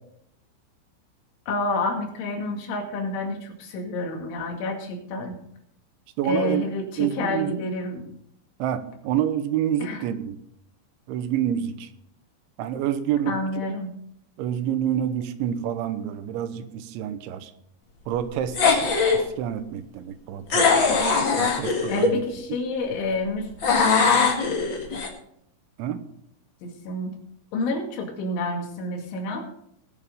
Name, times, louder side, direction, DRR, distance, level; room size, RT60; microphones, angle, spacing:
voice 1, 1.5-5.4 6.2-8.1 9.8-10.0 13.3-13.9 21.9-23.5 26.6-27.1 27.5-29.5, left 2 dB, 90° left, 2 dB, 4.7 m, -29 dB
voice 2, 6.2-6.7 7.0-7.6 8.6-10.4 11.1-11.9 12.6-13.6 14.4-17.5 18.1-18.8 19.1-20.7 21.4-22.2 25.8-26.0, right 10 dB, 85° right, 11 dB, 3.3 m, -28 dB
sound 1, 18.5-19.2 20.5-22.1 23.6-25.1, left 4 dB, 45° left, 1.6 m, -21 dB
19.5 x 7.2 x 5.2 m, 0.73 s
omnidirectional pair, 5.3 m